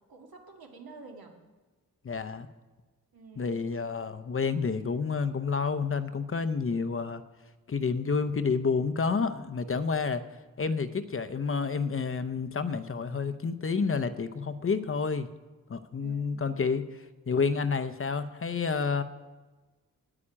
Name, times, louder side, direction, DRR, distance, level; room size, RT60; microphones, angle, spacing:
voice 1, 0.1-1.4 3.1-3.6 16.0-16.5, right 4 dB, 80° right, 2 dB, 2.2 m, -49 dB
voice 2, 2.0-2.5 3.4-7.2 7.7-10.2 10.6-15.3 15.7-19.0, left 5 dB, 40° left, 11 dB, 0.6 m, -29 dB
9.9 x 9.8 x 8.6 m, 1.2 s
wide cardioid pair, 155°, 35 cm